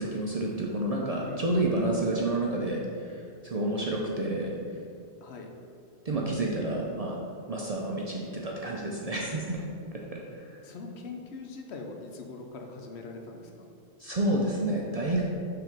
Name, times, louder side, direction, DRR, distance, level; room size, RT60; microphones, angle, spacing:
voice 1, 0.0-3.1 3.4-4.5 6.0-7.2 7.5-9.6 10.1-10.6 14.0-15.2, right 1 dB, 45° right, -2 dB, 0.5 m, -29 dB
voice 2, 1.2-1.9 5.2-5.5 9.6-9.7 10.6-13.7, left 3 dB, 70° left, 3 dB, 0.9 m, -42 dB
5.7 x 3.4 x 5.1 m, 2.3 s
omnidirectional pair, 1.2 m